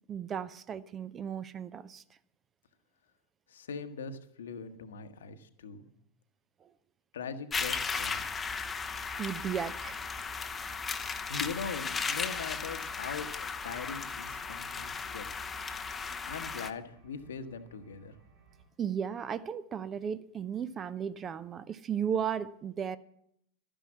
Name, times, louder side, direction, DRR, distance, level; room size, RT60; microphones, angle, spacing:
voice 1, 0.1-2.0 6.6-6.7 9.2-10.0 10.9-11.2 18.8-23.0, right 8 dB, 25° right, 16 dB, 0.5 m, -35 dB
voice 2, 3.5-5.9 7.1-8.3 10.8-15.3 16.2-18.1, left 5 dB, 65° left, 9 dB, 1.1 m, -41 dB
sound 1, 7.5-16.7, left 5 dB, 15° left, 0.7 m, -36 dB
sound 2, 7.9-18.6, right 4 dB, 60° right, 5.7 m, -62 dB
12.5 x 10.0 x 7.3 m, 0.73 s
figure-of-eight pair, 90°, 0 cm